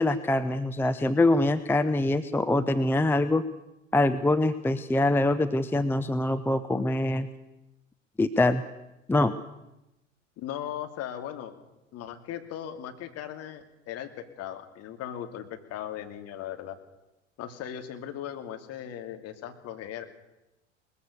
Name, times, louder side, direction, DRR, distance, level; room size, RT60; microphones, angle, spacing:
voice 1, 0.0-3.4 3.9-7.3 8.2-8.6 9.1-9.3, left 2 dB, 5° left, 10 dB, 0.7 m, -24 dB
voice 2, 10.4-11.5 11.9-16.8 17.4-20.0, left 10 dB, 40° left, 6 dB, 2.6 m, -38 dB
22.0 x 20.5 x 6.7 m, 0.95 s
figure-of-eight pair, 80°, 37 cm